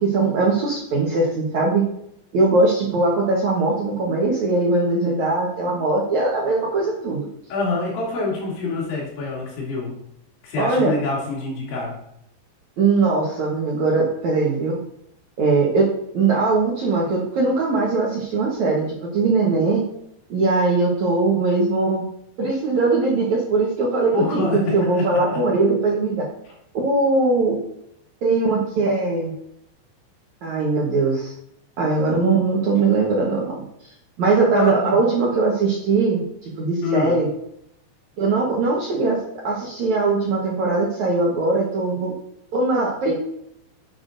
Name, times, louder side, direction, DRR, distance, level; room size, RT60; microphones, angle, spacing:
voice 1, 0.0-1.8 2.3-7.3 10.6-11.0 12.8-14.8 15.4-15.9 16.1-18.9 19.1-19.8 20.3-22.0 22.4-26.3 26.7-27.6 28.2-29.3 30.4-31.3 31.8-33.6 34.2-37.3 38.2-39.2 39.4-42.1 42.5-43.1, right 3 dB, 65° right, -3 dB, 1.8 m, -20 dB
voice 2, 7.5-9.9 10.4-12.0 24.1-25.4 34.5-35.0 36.8-37.2, left 3 dB, 85° left, -4 dB, 5.2 m, -26 dB
10.0 x 8.4 x 2.6 m, 0.75 s
omnidirectional pair, 5.2 m